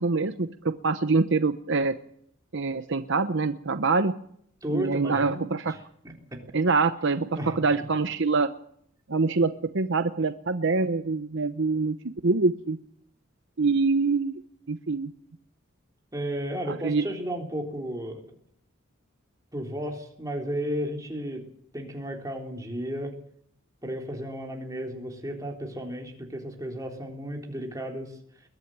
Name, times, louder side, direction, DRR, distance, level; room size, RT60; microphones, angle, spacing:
voice 1, 0.0-1.9 2.5-4.1 4.7-5.7 6.5-7.3 7.5-8.5 9.1-12.0 12.2-12.8 13.6-14.4 14.7-15.1 16.7-17.0, right 4 dB, 60° right, 10 dB, 0.9 m, -25 dB
voice 2, 4.6-5.8 6.0-6.4 7.3-7.6 16.1-18.2 19.5-21.4 21.7-23.1 23.8-28.1, equal, 15° right, 1 dB, 3.7 m, -33 dB
21.5 x 13.0 x 9.3 m, 0.67 s
head